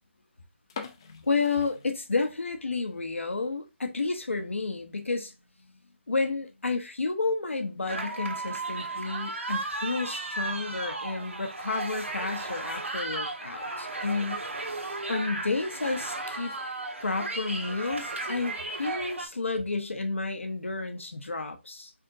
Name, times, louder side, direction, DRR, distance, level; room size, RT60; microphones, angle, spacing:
sound 1, 0.6-2.5 2.9-3.0 3.5-3.7 4.1-4.2 4.4-4.5 5.3-5.6, left 6 dB, 20° left, 0.4 m, -44 dB
voice 1, 1.0-5.3 6.1-14.4 15.1-16.5 17.0-21.9, left 3 dB, 85° left, 0.9 m, -31 dB
sound 2, 7.9-19.3, right 2 dB, 90° right, 1.4 m, -35 dB
5.0 x 2.9 x 2.6 m
figure-of-eight pair, 160°, 7 cm